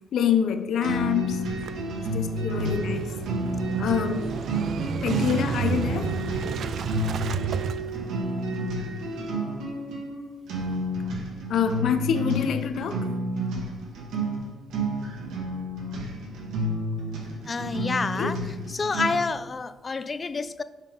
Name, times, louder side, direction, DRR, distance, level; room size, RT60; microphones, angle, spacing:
voice 1, 0.1-1.7 2.1-3.1 3.8-4.2 5.0-6.1 6.4-6.5 11.5-13.0 18.1-18.4, left 8 dB, 70° left, 7 dB, 0.6 m, -26 dB
sound 1, 0.8-19.4, right 1 dB, 85° right, 1.5 m, -30 dB
Motorcycle / Engine starting, 1.5-8.8, right 7 dB, 65° right, 0.3 m, -32 dB
voice 2, 17.5-18.4 18.7-20.6, left 4 dB, 35° left, 13 dB, 0.4 m, -28 dB
6.4 x 3.6 x 5.2 m, 1.1 s
cardioid pair, 90°, 0 cm